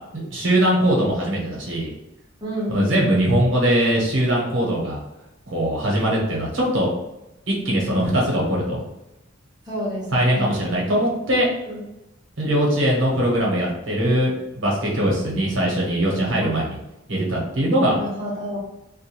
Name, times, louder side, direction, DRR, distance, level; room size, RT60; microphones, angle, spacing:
voice 1, 0.1-1.9 2.7-5.0 5.5-6.9 7.5-8.8 10.1-11.5 12.4-16.8 17.1-18.0, right 1 dB, 70° right, -3 dB, 1.0 m, -21 dB
voice 2, 2.4-3.0 9.7-10.6 11.7-11.8 16.4-16.5 17.9-18.6, equal, 20° right, -6 dB, 1.0 m, -29 dB
2.4 x 2.4 x 3.0 m, 0.91 s
head